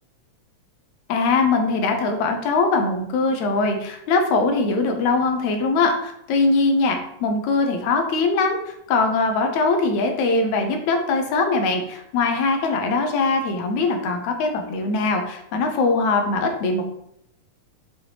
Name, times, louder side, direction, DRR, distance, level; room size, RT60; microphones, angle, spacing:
voice 1, 1.1-16.9, left 3 dB, 80° left, 4 dB, 2.3 m, -21 dB
7.0 x 6.3 x 3.1 m, 0.76 s
omnidirectional pair, 3.3 m